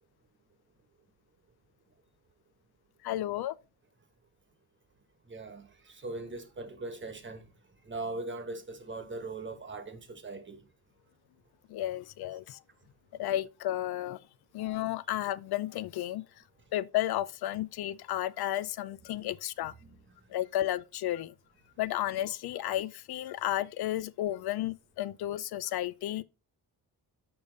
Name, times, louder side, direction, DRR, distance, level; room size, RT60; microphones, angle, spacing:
voice 1, 3.0-3.6 11.7-12.6 13.1-14.2 14.5-16.2 16.7-19.7 20.3-21.3 21.8-26.2, left 13 dB, 70° left, 0.5 m, -33 dB
voice 2, 5.3-7.4 7.9-10.6 19.8-19.9, right 2 dB, 30° right, 1.2 m, -40 dB
6.9 x 5.3 x 3.8 m
cardioid pair, 115°, 40 cm